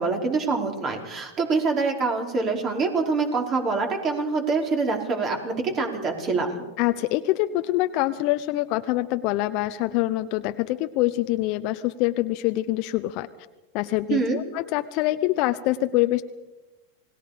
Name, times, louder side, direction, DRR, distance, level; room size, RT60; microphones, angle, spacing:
voice 1, 0.0-6.6 14.1-14.4, right 4 dB, 35° right, 3 dB, 4.6 m, -25 dB
voice 2, 6.8-13.3 13.7-16.2, left 16 dB, 50° left, 10 dB, 0.7 m, -25 dB
28.0 x 19.5 x 5.1 m, 1.1 s
hypercardioid pair, 110°, 0 cm